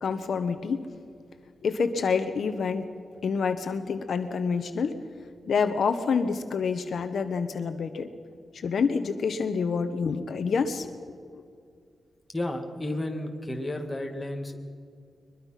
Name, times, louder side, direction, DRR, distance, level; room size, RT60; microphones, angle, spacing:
voice 1, 0.0-0.8 1.6-2.9 3.2-5.0 5.5-8.1 8.5-10.9 11.3-11.4, left 5 dB, 60° left, 8 dB, 1.1 m, -27 dB
voice 2, 12.3-14.6, left 1 dB, 10° left, 2 dB, 2.1 m, -32 dB
23.0 x 22.0 x 5.9 m, 2.2 s
wide cardioid pair, 155°, 0 cm